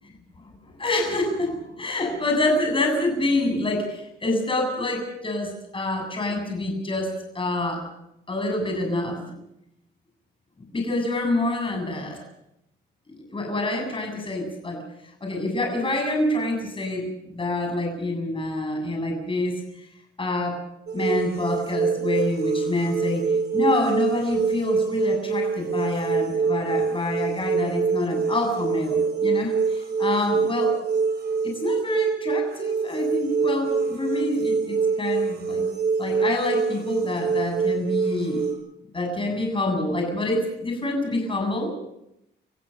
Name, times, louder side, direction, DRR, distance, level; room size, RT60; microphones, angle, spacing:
voice 1, 0.6-7.8 8.3-9.2 10.7-12.2 13.1-14.8 15.2-19.9 20.2-20.6 20.9-30.8 31.4-35.6 36.0-38.5 38.9-41.7, left 2 dB, 25° left, 3 dB, 7.7 m, -27 dB
sound 1, 20.9-38.5, right 5 dB, 50° right, 5.9 m, -25 dB
29.0 x 16.0 x 6.7 m, 0.82 s
cardioid pair, 90°, 20 cm